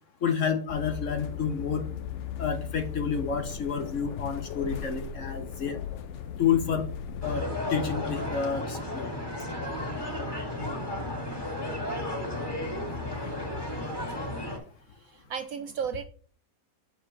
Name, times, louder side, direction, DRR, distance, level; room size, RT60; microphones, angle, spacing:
voice 1, 0.2-1.9 2.4-5.8 6.4-6.9 7.2-9.1, left 7 dB, 55° left, 8 dB, 1.0 m, -29 dB
sound 1, 0.7-7.4, left 8 dB, 85° left, 0.6 m, -37 dB
sound 2, 7.2-14.6, left 1 dB, 15° left, 1.9 m, -33 dB
voice 2, 12.6-12.9 14.2-14.3 15.1-16.0, right 7 dB, 70° right, 10 dB, 0.8 m, -35 dB
7.9 x 6.7 x 3.2 m, 0.44 s
omnidirectional pair, 1.9 m